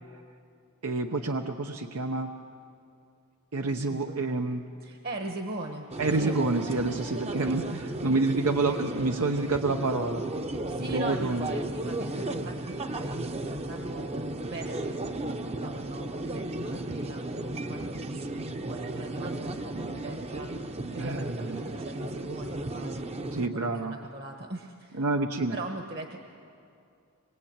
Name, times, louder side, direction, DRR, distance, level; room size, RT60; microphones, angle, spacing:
voice 1, 0.8-2.3 3.5-4.7 6.0-10.2 10.9-11.5 21.0-21.6 23.3-23.9 25.0-25.6, right 3 dB, 85° right, 4 dB, 1.0 m, -28 dB
voice 2, 3.9-4.2 4.8-6.3 7.1-7.2 7.4-8.2 10.7-25.0 25.5-26.2, right 2 dB, 45° right, 4 dB, 1.3 m, -41 dB
sound 1, 5.9-23.5, right 1 dB, 30° right, 0.8 m, -34 dB
25.0 x 21.5 x 8.8 m, 2.5 s
head